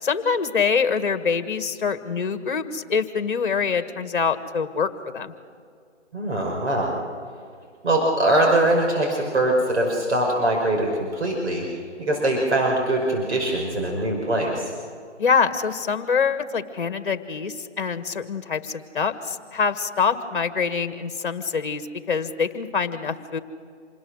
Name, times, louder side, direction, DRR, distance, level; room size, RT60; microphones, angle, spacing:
voice 1, 0.0-5.3 15.2-23.4, left 5 dB, 45° left, 10 dB, 1.6 m, -25 dB
voice 2, 6.1-6.9 7.8-11.7 12.0-14.7, right 1 dB, 65° right, -1 dB, 5.4 m, -22 dB
27.0 x 20.0 x 6.4 m, 2.3 s
hypercardioid pair, 165°, 36 cm